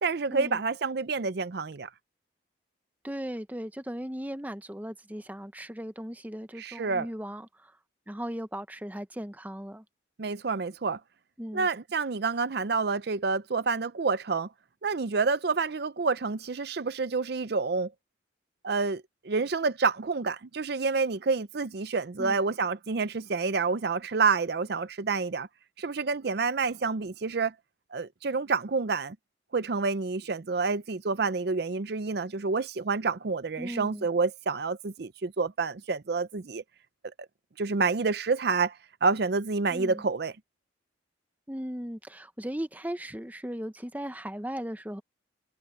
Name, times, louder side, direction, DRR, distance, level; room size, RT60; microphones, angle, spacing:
voice 1, 0.0-1.9 6.6-7.1 10.2-11.0 11.5-14.5 14.8-17.9 18.6-25.5 25.8-27.5 27.9-29.2 29.5-36.6 37.6-40.3, right 4 dB, 55° right, 0.5 m, -28 dB
voice 2, 3.0-7.7 8.1-9.8 11.4-11.7 22.2-22.4 33.6-34.1 39.7-40.0 41.5-45.0, equal, 10° right, 0.8 m, -37 dB
head